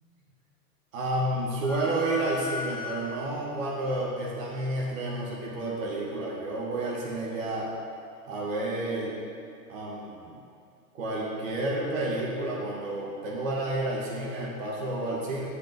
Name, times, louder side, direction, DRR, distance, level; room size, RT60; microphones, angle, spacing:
voice 1, 0.9-7.7 8.2-9.2 9.7-10.3 10.9-15.5, right 1 dB, 55° right, -4 dB, 2.2 m, -30 dB
sound 1, 1.6-3.5, left 5 dB, 55° left, 2.4 m, -38 dB
8.3 x 6.7 x 6.0 m, 2.4 s
figure-of-eight pair, 100°, 47 cm